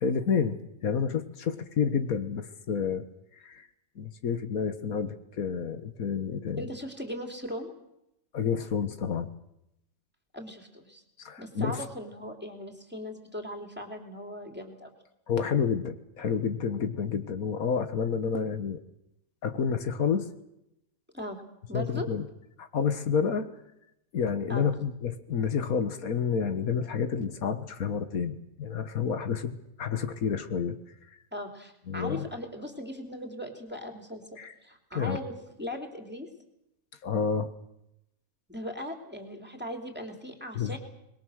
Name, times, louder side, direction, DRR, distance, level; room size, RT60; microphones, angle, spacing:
voice 1, 0.0-3.0 3.4-3.7 4.0-6.7 8.3-9.3 11.2-11.9 15.3-18.8 19.4-20.3 21.7-22.3 22.6-23.6 24.1-30.8 31.9-32.3 34.4-34.5 35.0-35.2 37.0-37.5 40.6-40.8, left 6 dB, 80° left, 10 dB, 1.8 m, -29 dB
voice 2, 6.6-7.7 10.3-11.0 11.4-14.9 21.1-21.4 21.7-22.1 24.5-24.7 31.3-36.3 38.5-40.8, left 1 dB, 5° right, 4 dB, 3.1 m, -39 dB
25.0 x 21.0 x 6.5 m, 0.82 s
omnidirectional pair, 1.5 m